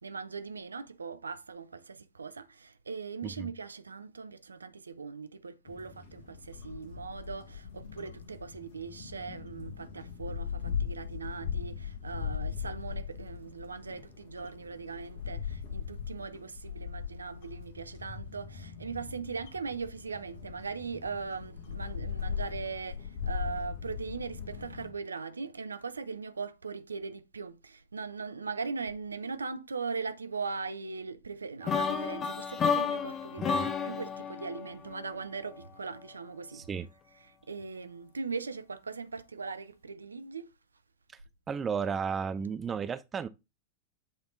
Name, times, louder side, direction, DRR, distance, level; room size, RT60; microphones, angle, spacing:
voice 1, 0.0-40.5, right 5 dB, 75° right, 0.5 m, -40 dB
sound 1, 5.7-24.9, left 7 dB, 55° left, 1.3 m, -39 dB
sound 2, 31.7-35.6, left 6 dB, 25° left, 0.9 m, -31 dB
voice 2, 33.4-33.7 36.5-36.9 41.5-43.3, right 6 dB, 20° right, 0.5 m, -33 dB
7.9 x 3.4 x 3.9 m
figure-of-eight pair, 90°, 0 cm